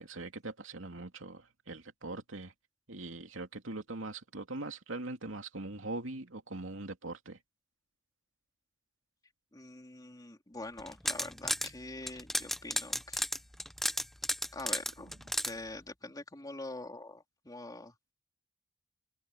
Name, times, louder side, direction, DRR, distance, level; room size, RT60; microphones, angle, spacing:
voice 1, 0.0-2.5 2.9-7.4, right 2 dB, 75° right, 2.8 m, -41 dB
voice 2, 9.5-13.2 14.5-15.1 15.5-18.1, left 2 dB, 20° left, 2.9 m, -45 dB
sound 1, 10.8-11.7 12.1-15.5, left 1 dB, ahead, 0.3 m, -33 dB
head